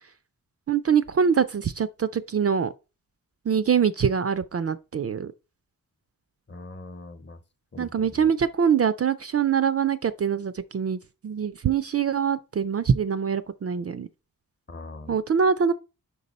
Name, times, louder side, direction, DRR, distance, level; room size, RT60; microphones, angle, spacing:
voice 1, 0.7-2.7 3.5-5.3 7.8-14.1 15.1-15.7, right 7 dB, 45° right, 0.4 m, -24 dB
voice 2, 6.5-7.4 7.7-8.3 14.7-15.2, left 2 dB, 30° left, 0.9 m, -42 dB
5.3 x 4.7 x 4.0 m
wide cardioid pair, 100°, 36 cm